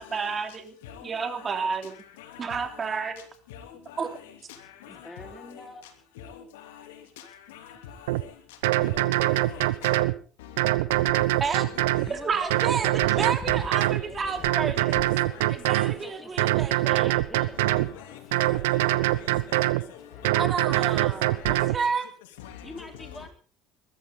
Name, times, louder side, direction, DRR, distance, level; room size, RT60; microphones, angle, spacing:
voice 1, 0.0-0.8 1.0-1.9 2.4-3.3 4.0-4.1 11.4-11.7 12.1-15.0 15.5-17.1 20.3-22.1, right 5 dB, 35° right, 3.1 m, -30 dB
voice 2, 0.8-1.6 2.2-2.7 3.5-4.3 4.8-5.5 6.2-6.9 7.5-8.3 8.8-10.0 10.4-10.5 11.0-11.2 11.5-13.6 14.2-15.0 15.3-15.5 17.6-18.8 19.1-19.6 19.9-20.0 20.2-20.4 20.8-20.9 21.3-21.4 22.4-23.3, left 9 dB, 85° left, 3.2 m, -45 dB
voice 3, 4.9-5.8 12.0-14.6 16.0-17.6 22.6-23.3, left 2 dB, 10° left, 3.9 m, -45 dB
sound 1, 8.1-8.2 8.6-10.2 10.6-12.1 12.5-14.0 14.4-16.0 16.4-17.9 18.3-19.8 20.2-21.8, right 17 dB, 85° right, 0.9 m, -23 dB
sound 2, 10.9-21.5, left 7 dB, 40° left, 1.9 m, -46 dB
21.5 x 14.0 x 4.0 m
supercardioid pair, 80°, 0 cm